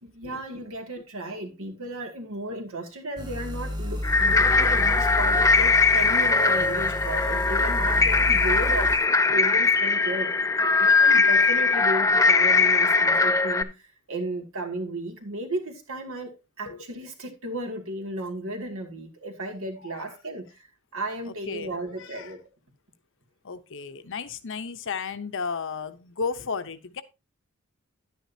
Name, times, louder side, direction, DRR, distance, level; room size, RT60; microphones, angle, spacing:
voice 1, 0.0-9.0 9.3-10.3 10.8-20.7 20.9-22.4, right 1 dB, 70° right, 2.3 m, -34 dB
sound 1, 3.2-9.0, left 1 dB, 20° right, 1.5 m, -31 dB
sound 2, 4.0-13.6, left 4 dB, 15° left, 0.6 m, -20 dB
voice 2, 21.2-22.3 23.4-27.0, left 5 dB, 60° left, 0.9 m, -34 dB
11.0 x 9.3 x 2.8 m
head